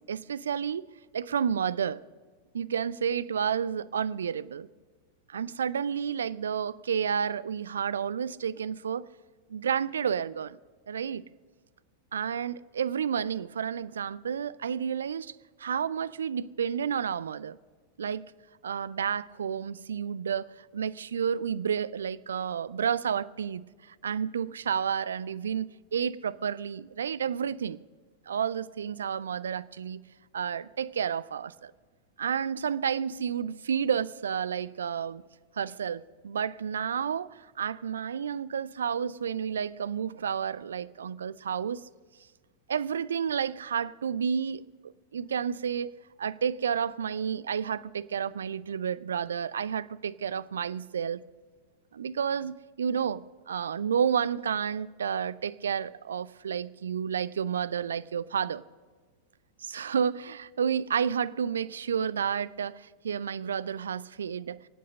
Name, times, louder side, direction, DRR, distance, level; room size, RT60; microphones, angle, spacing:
voice 1, 0.1-0.9 1.1-2.0 2.5-4.7 5.3-9.1 9.5-10.6 10.9-11.2 12.1-15.3 15.6-17.6 18.0-18.3 18.6-20.5 20.7-27.8 28.3-30.0 30.3-31.7 32.2-35.2 35.6-41.8 42.7-45.9 46.2-51.2 51.9-58.6 59.6-64.6, right 7 dB, 65° right, 0.4 m, -31 dB
23.0 x 8.5 x 6.4 m
figure-of-eight pair, 90°, 0 cm